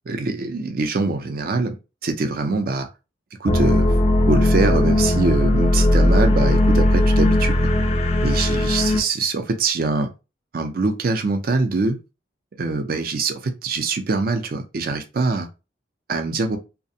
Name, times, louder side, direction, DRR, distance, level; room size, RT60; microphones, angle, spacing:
voice 1, 0.1-1.8 2.0-2.9 3.4-3.9 4.3-7.7 8.2-10.1 10.5-12.0 12.6-15.5 16.1-16.6, right 3 dB, 50° right, 6 dB, 0.4 m, -23 dB
sound 1, 3.5-9.0, left 1 dB, 35° left, 0.3 m, -18 dB
2.4 x 2.1 x 2.6 m, 0.28 s
head